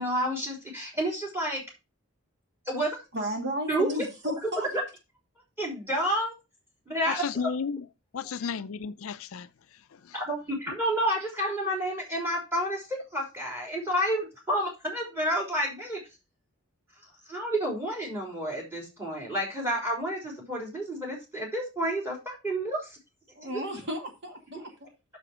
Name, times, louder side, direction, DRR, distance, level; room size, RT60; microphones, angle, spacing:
voice 1, 0.0-1.6 2.7-3.0 3.7-3.9 4.4-4.8 5.6-6.3 6.9-7.5 10.1-16.0 17.3-23.0 23.4-23.6, right 1 dB, 10° right, 3.7 m, -30 dB
voice 2, 3.1-4.7 23.4-24.6, equal, 50° right, 2.4 m, -33 dB
voice 3, 7.1-7.8 8.1-9.5 10.0-10.1, left 6 dB, 75° left, 0.5 m, -33 dB
6.9 x 6.7 x 4.9 m
head